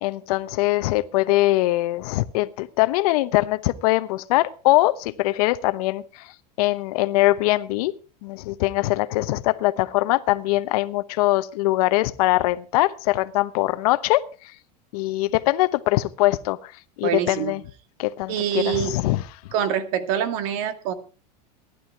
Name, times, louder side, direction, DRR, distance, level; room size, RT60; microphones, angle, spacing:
voice 1, 0.0-6.3 6.6-7.9 8.2-14.2 14.9-16.7 17.0-17.6 18.0-19.2, left 18 dB, 65° left, 1.0 m, -22 dB
voice 2, 17.0-17.5 18.3-18.9 19.5-20.9, right 9 dB, 60° right, 2.1 m, -25 dB
16.0 x 11.5 x 4.6 m
supercardioid pair, 140°, 20 cm